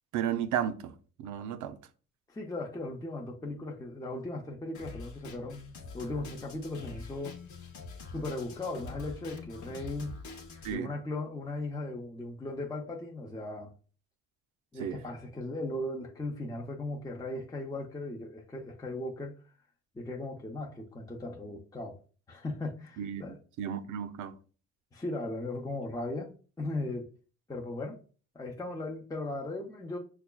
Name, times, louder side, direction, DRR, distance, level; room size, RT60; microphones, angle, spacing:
voice 1, 0.1-0.9 1.2-1.8 10.6-10.9 14.8-15.0 23.0-24.3, right 9 dB, 80° right, 0.5 m, -33 dB
voice 2, 2.3-5.6 5.9-7.4 8.1-10.1 10.7-13.7 14.7-19.4 19.9-22.0 22.3-23.4 24.9-27.1 27.5-28.0 28.3-30.0, left 2 dB, 10° left, 0.6 m, -37 dB
Drum kit, 4.7-10.7, left 3 dB, 70° left, 0.8 m, -45 dB
5.7 x 2.3 x 2.2 m
cardioid pair, 90°, 30 cm